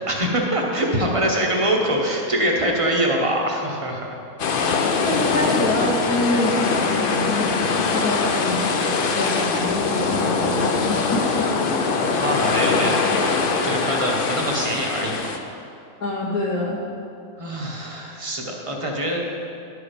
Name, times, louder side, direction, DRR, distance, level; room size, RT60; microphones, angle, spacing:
voice 1, 0.1-4.2 11.7-15.3 17.4-19.3, right 1 dB, 30° right, 0 dB, 0.8 m, -24 dB
sound 1, 4.4-15.4, left 4 dB, 60° left, 0.6 m, -22 dB
voice 2, 5.0-8.9 9.1-11.5 12.0-12.1 12.4-12.6 16.0-16.8, left 1 dB, 80° left, -4 dB, 1.8 m, -26 dB
11.0 x 4.8 x 5.1 m, 2.6 s
omnidirectional pair, 1.5 m